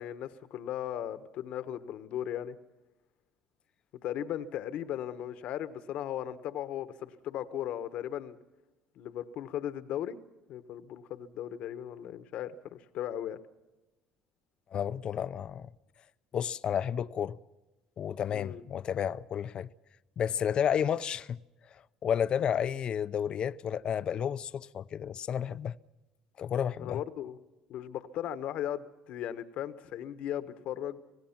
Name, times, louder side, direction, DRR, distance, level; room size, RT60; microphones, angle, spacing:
voice 1, 0.0-2.6 4.0-8.4 9.0-10.2 10.5-13.4 18.3-18.6 26.8-27.4 27.7-31.0, left 11 dB, 65° left, 1.2 m, -37 dB
voice 2, 14.7-15.7 16.3-17.4 18.0-19.7 20.2-21.4 21.7-25.8 26.4-27.0, left 8 dB, 50° left, 0.6 m, -31 dB
26.0 x 18.5 x 5.9 m
supercardioid pair, 80°, 2 cm